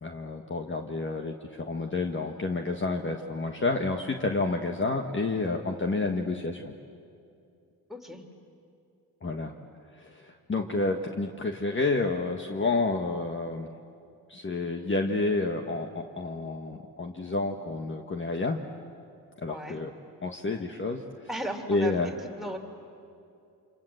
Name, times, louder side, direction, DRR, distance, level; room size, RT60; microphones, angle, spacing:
voice 1, 0.0-6.7 9.2-9.5 9.9-13.7 14.3-18.6 19.4-19.9 20.2-21.0 21.7-22.1, left 3 dB, 30° left, 4 dB, 1.4 m, -29 dB
voice 2, 7.9-8.2 19.5-19.8 21.3-22.6, right 1 dB, ahead, 4 dB, 3.1 m, -36 dB
28.0 x 26.5 x 7.8 m, 2.5 s
cardioid pair, 90°, 38 cm